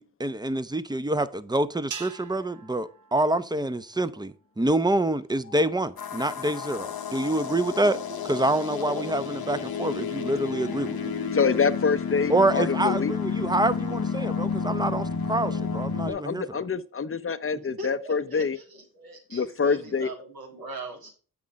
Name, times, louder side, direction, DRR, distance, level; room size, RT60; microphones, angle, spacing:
voice 1, 0.0-8.0 8.3-11.1 12.3-16.5, right 1 dB, 10° right, 0.7 m, -26 dB
sound 1, 1.9-4.3, right 7 dB, 55° right, 0.8 m, -43 dB
voice 2, 5.4-5.8 6.6-6.7 8.4-8.7 9.5-9.8 10.4-10.7 11.3-13.1 16.0-18.6 19.3-20.1, left 5 dB, 35° left, 0.8 m, -27 dB
sound 2, 6.0-16.1, left 6 dB, 70° left, 1.1 m, -31 dB
voice 3, 7.1-8.4 8.8-9.4 17.8-21.1, right 2 dB, 75° right, 2.8 m, -42 dB
8.4 x 6.1 x 3.6 m
cardioid pair, 50°, 37 cm